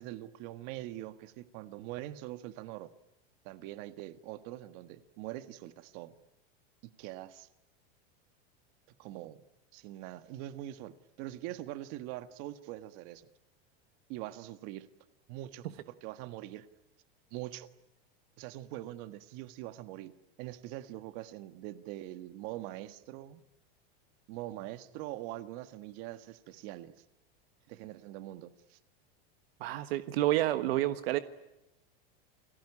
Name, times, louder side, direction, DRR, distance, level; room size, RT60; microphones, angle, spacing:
voice 1, 0.0-2.9 3.4-6.2 6.8-7.5 9.0-9.4 9.7-13.3 14.1-14.9 15.3-16.7 17.3-17.7 18.4-23.4 24.3-26.9 27.7-28.8, right 15 dB, 50° right, 11 dB, 1.5 m, -43 dB
voice 2, 29.6-31.2, right 15 dB, 70° right, 11 dB, 1.4 m, -29 dB
29.0 x 19.0 x 9.9 m, 0.91 s
supercardioid pair, 135°, 31 cm